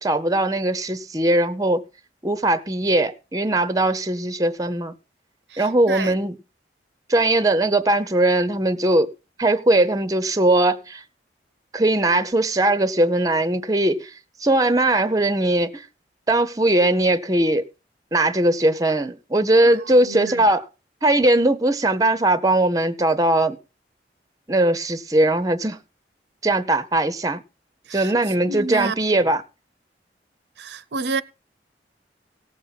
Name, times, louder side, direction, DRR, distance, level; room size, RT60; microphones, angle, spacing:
voice 1, 0.0-1.8 2.2-4.9 5.6-6.4 7.1-9.1 9.4-11.0 11.7-14.1 14.4-15.9 16.3-17.7 18.1-20.7 21.0-23.6 24.5-25.8 26.4-27.4 27.9-29.4, right 1 dB, 20° right, 0.7 m, -20 dB
voice 2, 5.5-6.1 19.6-20.4 27.9-28.1 28.4-29.3 30.6-31.2, right 4 dB, 80° right, 0.7 m, -30 dB
17.5 x 7.2 x 4.0 m
head